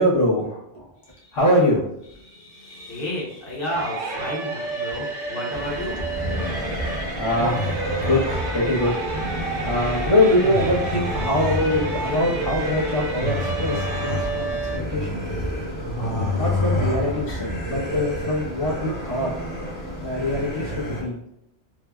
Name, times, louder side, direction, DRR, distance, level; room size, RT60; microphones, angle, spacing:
voice 1, 0.0-0.9 1.3-1.9 6.6-6.9 7.1-14.6 14.9-15.2 15.9-19.3 20.0-21.2, left 1 dB, 85° left, -8 dB, 1.3 m, -23 dB
voice 2, 1.1-1.4 2.2-6.0 17.3-17.5, left 1 dB, 50° left, -5 dB, 1.1 m, -32 dB
sound 1, 3.7-14.8, right 3 dB, 55° right, 0.8 m, -30 dB
sound 2, 5.5-21.0, left 1 dB, 25° left, 0.5 m, -29 dB
3.3 x 2.0 x 2.3 m, 0.78 s
omnidirectional pair, 1.2 m